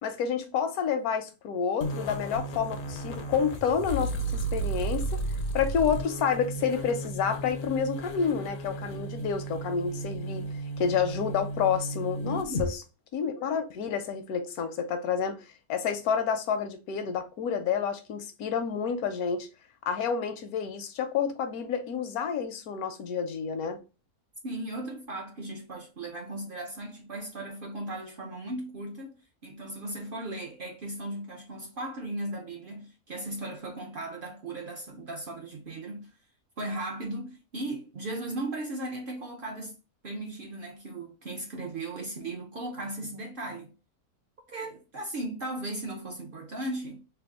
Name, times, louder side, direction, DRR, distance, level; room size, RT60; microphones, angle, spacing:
voice 1, 0.0-5.2 5.5-10.4 10.8-12.8 13.1-15.4 15.7-19.5 19.9-23.8, left 7 dB, 80° left, 1.1 m, -29 dB
sound 1, 1.8-12.7, right 1 dB, 60° left, 0.5 m, -34 dB
voice 2, 11.9-12.6 24.4-29.1 29.4-36.1 36.6-39.8 40.0-43.7 44.5-47.0, right 1 dB, 60° right, 0.5 m, -37 dB
3.3 x 2.1 x 3.6 m
omnidirectional pair, 1.6 m